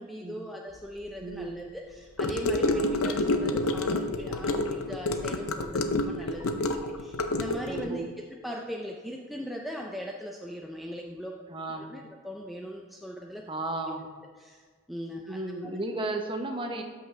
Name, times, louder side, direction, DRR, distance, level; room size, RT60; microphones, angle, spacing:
voice 1, 0.0-8.1 8.4-11.4 11.8-13.4 13.9-14.0 14.4-14.6 14.9-15.7, equal, ahead, -1 dB, 0.4 m, -39 dB
voice 2, 1.2-1.5 2.6-2.9 7.7-8.0 11.5-11.9 13.5-14.1 15.3-16.8, right 2 dB, 25° right, 4 dB, 0.8 m, -34 dB
Gurgling / Car passing by / Sink (filling or washing), 2.2-7.9, left 2 dB, 75° left, 0.6 m, -28 dB
13.0 x 5.7 x 3.3 m, 1.6 s
head